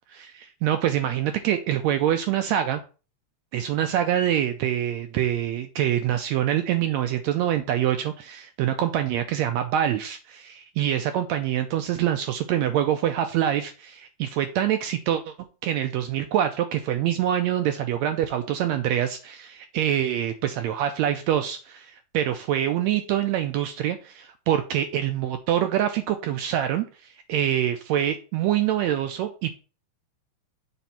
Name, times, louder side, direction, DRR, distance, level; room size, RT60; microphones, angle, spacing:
voice 1, 0.1-2.8 3.5-15.3 15.6-26.8 27.3-29.5, right 11 dB, 80° right, 8 dB, 1.6 m, -25 dB
7.0 x 3.4 x 5.8 m, 0.35 s
omnidirectional pair, 3.6 m